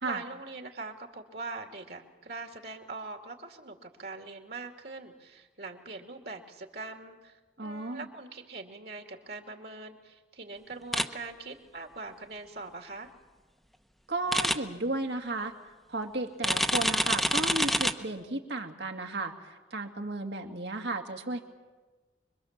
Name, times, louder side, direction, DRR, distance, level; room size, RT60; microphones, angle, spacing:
voice 1, 0.0-13.1, right 3 dB, 60° right, 4 dB, 2.5 m, -42 dB
voice 2, 7.6-8.1 14.1-15.5 15.9-21.4, right 2 dB, 75° right, 3 dB, 2.3 m, -34 dB
sound 1, 10.9-11.0 14.3-14.5 16.4-17.9, equal, ahead, 0.9 m, -26 dB
25.0 x 23.0 x 7.4 m, 1.3 s
head